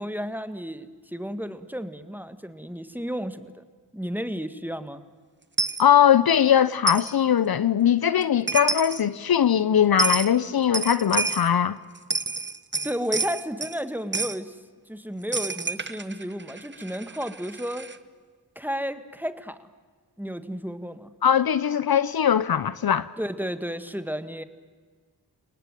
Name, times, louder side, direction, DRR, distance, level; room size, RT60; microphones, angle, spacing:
voice 1, 0.0-3.6 3.9-5.0 12.8-14.6 14.9-17.9 18.6-19.7 20.2-21.1 23.2-24.4, equal, 5° right, 1.8 m, -32 dB
Coin (dropping), 5.6-5.8 6.9-7.1 8.2-8.3 8.5-9.0 10.0-10.3 10.7-11.5 12.0-13.8 14.1-14.4 15.3-18.0, right 4 dB, 25° right, 1.1 m, -28 dB
voice 2, 5.8-11.8 21.2-23.1, left 9 dB, 60° left, 0.8 m, -20 dB
29.5 x 18.5 x 9.2 m
cardioid pair, 50°, 41 cm